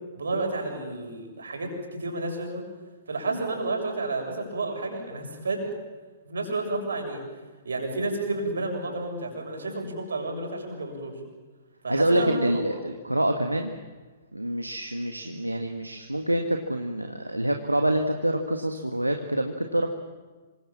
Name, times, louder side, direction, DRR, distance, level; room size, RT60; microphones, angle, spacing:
voice 1, 0.1-2.6 3.1-5.6 6.3-7.2 7.7-11.1 11.8-12.8 15.2-15.3, right 2 dB, 70° right, 3 dB, 7.2 m, -31 dB
voice 2, 11.9-13.7 14.3-19.9, right 1 dB, 90° right, 5 dB, 1.8 m, -26 dB
27.0 x 25.0 x 7.5 m, 1.3 s
figure-of-eight pair, 115°, 0 cm